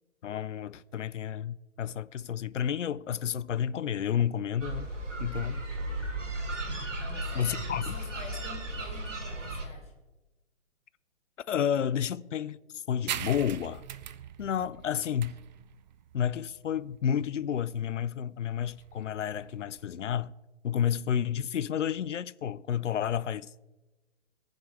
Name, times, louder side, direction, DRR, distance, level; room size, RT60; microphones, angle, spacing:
voice 1, 0.2-4.9 5.2-5.6 7.3-8.0 11.5-13.8 14.4-15.4 16.1-20.3 20.6-23.5, left 9 dB, 75° left, 0.6 m, -31 dB
sound 1, 4.6-9.7, right 1 dB, 75° right, 3.3 m, -35 dB
voice 2, 7.0-9.9, left 2 dB, 15° left, 3.1 m, -47 dB
sound 2, 13.1-20.2, right 10 dB, 35° right, 0.6 m, -42 dB
20.0 x 6.8 x 4.8 m
figure-of-eight pair, 130°, 37 cm